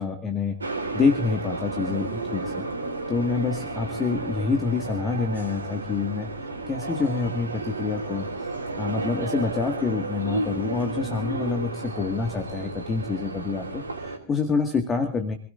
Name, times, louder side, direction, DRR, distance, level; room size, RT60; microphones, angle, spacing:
voice 1, 0.0-2.6 3.1-6.3 6.7-8.5 8.8-15.4, left 4 dB, 20° left, 6 dB, 1.9 m, -27 dB
sound 1, 0.6-14.2, right 2 dB, 75° right, 2.8 m, -32 dB
28.0 x 16.5 x 2.6 m, 0.35 s
figure-of-eight pair, 90°, 0 cm